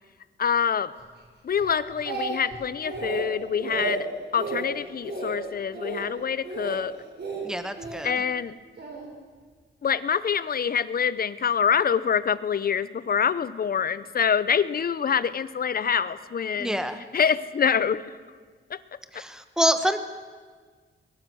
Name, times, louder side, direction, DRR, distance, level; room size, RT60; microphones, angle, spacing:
voice 1, 0.4-0.9 1.4-4.1 4.3-6.9 8.0-8.6 9.8-16.8 17.1-18.0 18.7-18.8, left 7 dB, 45° left, 16 dB, 0.7 m, -25 dB
Speech, 1.6-2.6 2.8-3.3 3.6-4.0 4.4-4.6 5.0-5.4 5.7-6.0 6.4-6.8 7.2-8.0 8.8-9.0, right 4 dB, 55° right, 5.2 m, -32 dB
voice 2, 7.4-8.1 16.6-17.0 19.1-20.0, equal, 5° right, 9 dB, 1.3 m, -26 dB
21.5 x 21.0 x 6.3 m, 1.5 s
wide cardioid pair, 140°, 21 cm